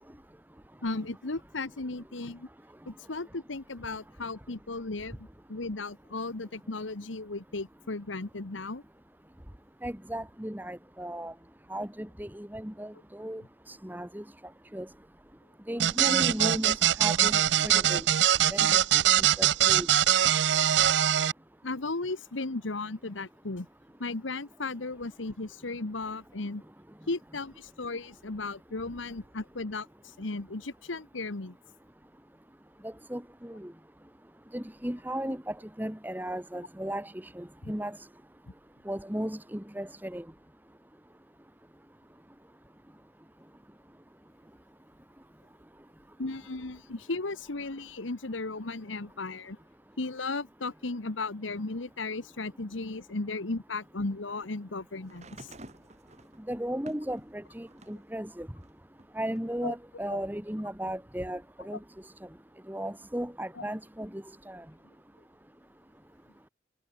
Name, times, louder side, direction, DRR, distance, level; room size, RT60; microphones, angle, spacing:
voice 1, 0.8-2.5 2.9-8.8 16.4-16.6 21.6-23.7 24.0-26.6 27.1-31.5 46.2-49.6 50.0-55.5 59.6-59.7 60.1-60.2 61.7-61.8 63.5-63.6, left 3 dB, 85° left, 1.4 m, -35 dB
voice 2, 9.8-11.3 11.7-14.2 14.7-14.9 15.7-18.0 18.5-18.8 19.2-19.9 32.8-33.7 34.5-38.0 38.8-40.2 56.5-58.5 59.1-61.8 62.7-64.6, right 1 dB, 10° right, 1.5 m, -36 dB
sound 1, 15.8-21.3, right 11 dB, 65° right, 0.5 m, -23 dB
sound 2, 55.0-58.1 58.6-59.7 60.7-60.8, right 1 dB, 35° right, 5.4 m, -51 dB
head